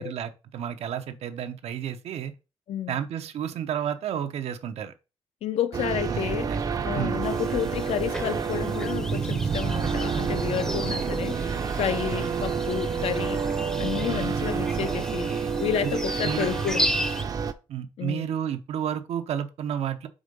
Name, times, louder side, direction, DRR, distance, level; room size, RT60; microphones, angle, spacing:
voice 1, 0.0-2.3 2.9-4.9 6.1-6.6 6.9-7.2 10.8-11.1 12.1-12.3 15.3-15.5 16.2-16.5 17.7-20.1, right 9 dB, 85° right, 0.8 m, -31 dB
voice 2, 2.7-3.0 5.4-6.5 6.8-11.5 11.8-13.4 13.8-16.9 18.0-18.3, left 9 dB, 75° left, 0.6 m, -30 dB
sound 1, 5.7-17.5, right 6 dB, 35° right, 0.5 m, -28 dB
sound 2, 7.2-17.2, equal, 5° left, 0.6 m, -35 dB
5.0 x 3.7 x 5.2 m
wide cardioid pair, 160°, 10 cm